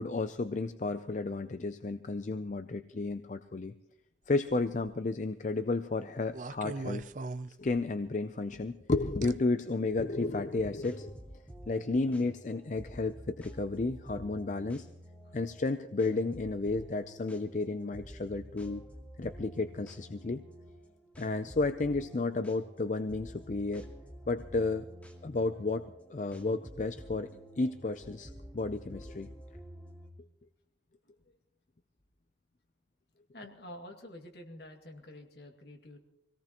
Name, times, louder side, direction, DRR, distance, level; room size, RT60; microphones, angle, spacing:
voice 1, 0.0-3.7 4.3-7.1 7.6-11.1 11.7-14.9 15.3-18.8 19.2-20.4 21.2-23.9 24.3-24.9 25.2-27.3 27.6-29.3, left 3 dB, 40° left, 10 dB, 0.5 m, -32 dB
sound 1, 4.5-5.0 6.3-8.1 9.2-9.3 10.2-10.3, right 3 dB, 45° right, 0.5 m, -40 dB
sound 2, 10.4-30.1, equal, 10° left, 2.1 m, -50 dB
voice 2, 33.3-36.0, left 1 dB, 60° left, 3 dB, 2.2 m, -48 dB
24.5 x 17.5 x 3.0 m, 0.88 s
head